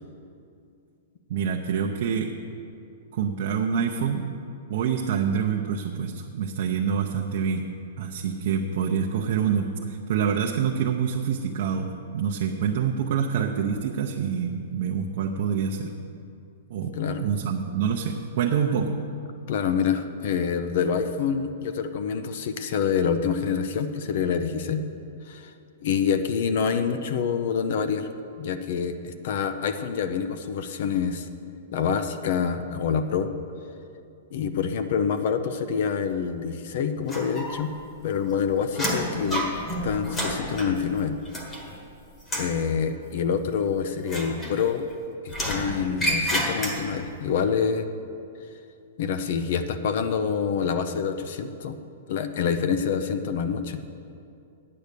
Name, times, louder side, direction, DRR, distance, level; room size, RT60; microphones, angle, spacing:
voice 1, 1.3-2.3 3.1-4.3 4.7-7.7 8.0-15.9 16.7-18.9, right 7 dB, 50° right, 1 dB, 0.7 m, -26 dB
voice 2, 19.5-24.8 25.3-25.5 25.8-28.1 28.4-31.3 31.7-33.3 34.3-37.7 38.0-39.5 39.8-41.2 42.3-44.9 45.2-47.9 49.0-51.8 52.1-53.8, left 6 dB, 50° left, 9 dB, 0.6 m, -26 dB
sound 1, 37.1-37.8 38.1-41.9 42.2-42.6 44.0-44.9 45.3-47.1, equal, 15° left, 1.4 m, -30 dB
9.3 x 8.6 x 6.7 m, 2.5 s
hypercardioid pair, 165°, 0 cm